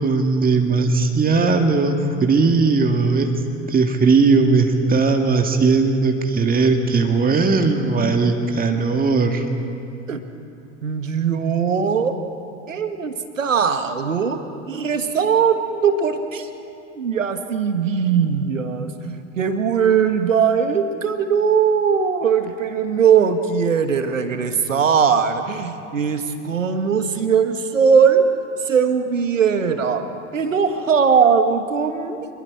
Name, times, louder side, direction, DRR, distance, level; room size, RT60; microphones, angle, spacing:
voice 1, 0.0-3.3 3.7-9.5, right 4 dB, 20° right, 4 dB, 1.9 m, -18 dB
voice 2, 10.8-12.2 12.7-14.4 14.7-16.5 16.9-28.2 28.7-30.0 30.3-32.3, right 6 dB, 80° right, 9 dB, 1.4 m, -20 dB
26.5 x 21.5 x 4.8 m, 2.7 s
figure-of-eight pair, 70°, 38 cm